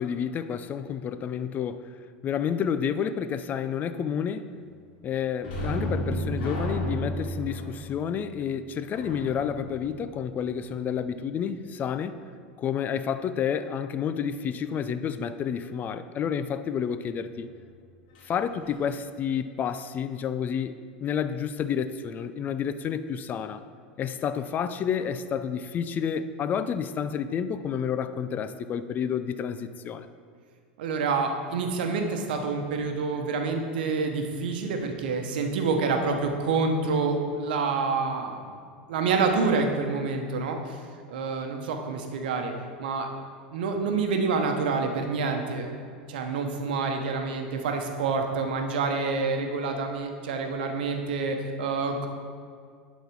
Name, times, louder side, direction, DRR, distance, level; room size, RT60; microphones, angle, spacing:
voice 1, 0.0-2.0 2.2-4.5 5.0-12.2 12.6-17.5 18.2-23.6 24.0-30.1, left 8 dB, 35° left, 12 dB, 0.4 m, -30 dB
sound 1, 5.4-10.8 18.1-18.3 18.7-18.8, equal, 70° left, 2.1 m, -33 dB
voice 2, 30.8-38.4 38.9-40.8 41.1-42.5 42.8-43.1 43.5-45.7 46.1-52.1, right 4 dB, 75° right, 4 dB, 1.0 m, -27 dB
10.5 x 4.1 x 4.6 m, 2.1 s
hypercardioid pair, 95°, 5 cm